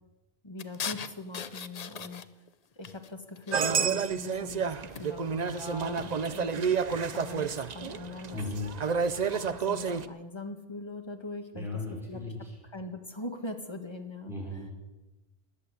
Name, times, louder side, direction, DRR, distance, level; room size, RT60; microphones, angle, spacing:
voice 1, 0.4-2.3 2.7-8.4 9.1-11.7 12.1-12.3 12.6-14.3, left 2 dB, 25° left, 6 dB, 1.6 m, -41 dB
sound 1, 0.6-2.5 2.8-4.1 4.9-5.4 5.8-6.2 6.9-7.4, left 7 dB, 45° left, 0.7 m, -41 dB
sound 2, 3.5-10.0, right 6 dB, 45° right, 0.8 m, -30 dB
voice 2, 8.3-8.7 11.5-12.5 14.2-14.7, left 2 dB, ahead, -4 dB, 5.7 m, -36 dB
20.0 x 8.5 x 8.2 m, 1.1 s
omnidirectional pair, 1.0 m